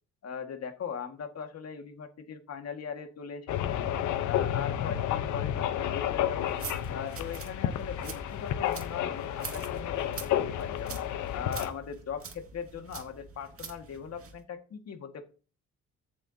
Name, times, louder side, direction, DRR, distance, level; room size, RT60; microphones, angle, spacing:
voice 1, 0.2-3.9 4.2-6.6 6.9-11.0 11.3-15.2, left 7 dB, 55° left, 6 dB, 1.9 m, -40 dB
sound 1, 3.5-11.7, left 11 dB, 80° left, 1.0 m, -31 dB
sound 2, 6.4-14.4, right 5 dB, 50° right, 2.1 m, -45 dB
14.0 x 7.2 x 2.8 m, 0.37 s
cardioid pair, 90°, 30 cm